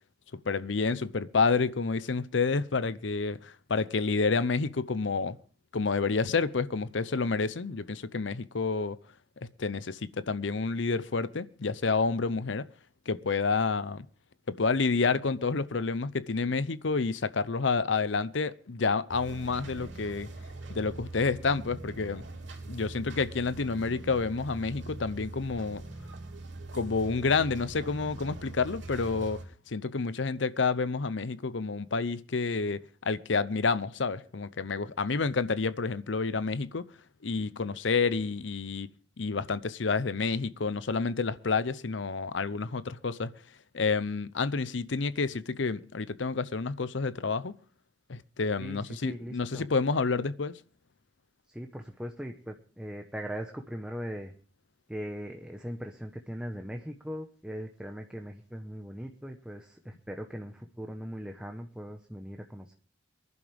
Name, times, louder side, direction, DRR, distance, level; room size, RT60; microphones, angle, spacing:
voice 1, 0.5-5.4 5.7-9.0 9.4-12.7 13.1-14.0 14.5-20.3 20.7-22.2 22.7-25.8 26.7-36.8 37.2-38.9 39.2-43.3 43.7-47.5 48.1-50.6, left 4 dB, 75° left, 0.7 m, -29 dB
sound 1, 19.1-29.5, right 2 dB, 75° right, 3.0 m, -42 dB
voice 2, 48.6-49.7 51.5-54.3 54.9-62.7, equal, 5° right, 1.1 m, -40 dB
24.0 x 11.0 x 3.4 m
head